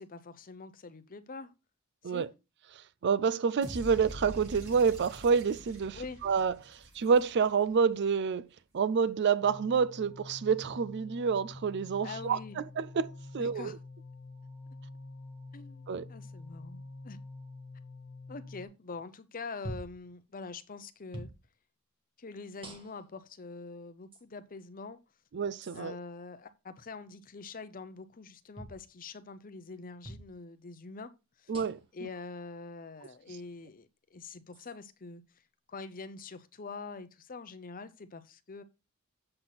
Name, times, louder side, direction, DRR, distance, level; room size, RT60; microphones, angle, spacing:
voice 1, 0.0-1.5 2.0-2.3 5.9-6.2 12.0-12.6 13.4-13.8 15.5-17.2 18.3-21.3 22.2-25.0 25.7-31.1 31.4-31.5 31.9-35.2 35.7-38.6, left 4 dB, 40° left, 0.7 m, -44 dB
voice 2, 2.7-8.5 8.7-13.7 15.9-16.1 25.3-26.0 31.5-31.8, right 6 dB, 50° right, 0.4 m, -28 dB
sound 1, 3.6-7.7, equal, 75° right, 5.3 m, -45 dB
sound 2, 9.4-18.7, left 2 dB, 80° left, 1.2 m, -47 dB
sound 3, 19.6-20.0 21.1-21.4 22.6-23.1 24.1-24.2 25.6-25.8 28.5-28.8 30.0-30.3 31.5-31.9 33.0-33.1 34.5-34.7, right 1 dB, 25° right, 1.7 m, -44 dB
7.7 x 6.0 x 4.0 m
head